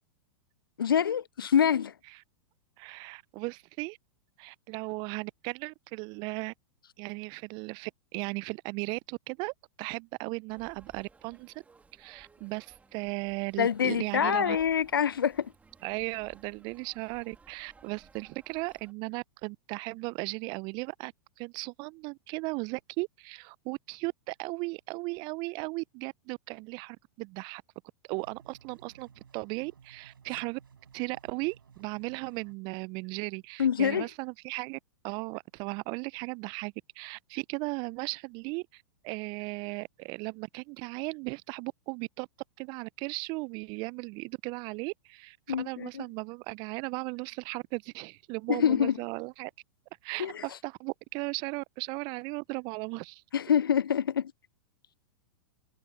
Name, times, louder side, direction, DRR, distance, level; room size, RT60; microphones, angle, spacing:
voice 1, 0.8-1.9 13.6-15.5 33.6-34.1 45.5-46.0 48.5-49.0 50.2-50.4 53.3-54.3, left 8 dB, 80° left, 0.4 m, -26 dB
voice 2, 2.8-4.0 4.4-6.5 7.0-11.5 12.0-14.6 15.8-21.1 21.4-27.6 28.1-30.6 30.9-42.3 42.6-49.5 50.0-53.2, right 28 dB, 40° right, 0.6 m, -36 dB
sound 1, 10.5-18.9, right 4 dB, 10° right, 2.9 m, -59 dB
sound 2, 28.2-32.6, right 7 dB, 75° right, 5.2 m, -57 dB
figure-of-eight pair, 100°, 12 cm